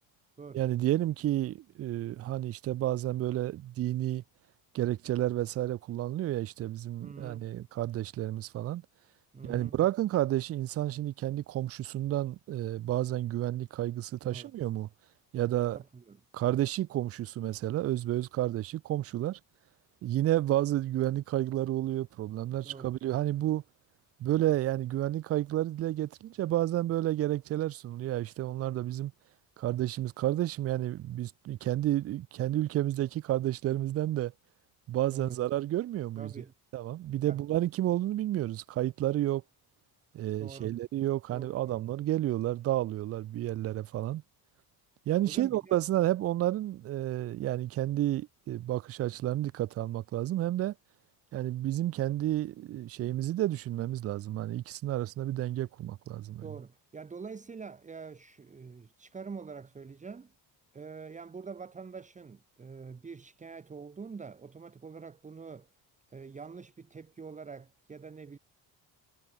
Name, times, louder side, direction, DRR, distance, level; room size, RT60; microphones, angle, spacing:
voice 1, 0.5-4.2 4.7-8.8 9.4-14.9 15.3-15.8 16.3-19.4 20.0-23.6 24.2-29.1 29.6-34.3 34.9-36.3 36.7-39.4 40.1-44.2 45.1-50.7 51.3-56.4, right 14 dB, 40° right, 0.4 m, -31 dB
voice 2, 7.0-7.5 9.3-9.8 14.2-14.5 15.7-16.2 22.6-22.9 35.1-35.4 36.2-36.5 37.2-37.4 40.4-40.8 41.3-41.8 45.2-45.8 56.4-60.3 60.7-65.7 66.1-68.4, right 5 dB, 20° right, 1.4 m, -45 dB
cardioid pair, 160°, 40 cm